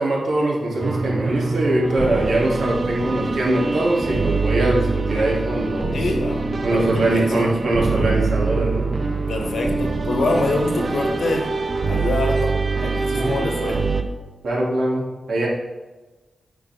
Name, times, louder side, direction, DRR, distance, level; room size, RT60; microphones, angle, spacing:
voice 1, 0.0-6.0 6.6-8.9 13.1-13.4 14.4-15.5, right 1 dB, 75° right, -4 dB, 2.3 m, -22 dB
sound 1, 0.8-14.0, right 3 dB, 40° right, 0.6 m, -24 dB
voice 2, 5.9-7.5 9.3-11.5 11.9-13.8, left 2 dB, 75° left, 1 dB, 1.4 m, -25 dB
9.4 x 5.6 x 3.4 m, 1.2 s
wide cardioid pair, 130°, 0 cm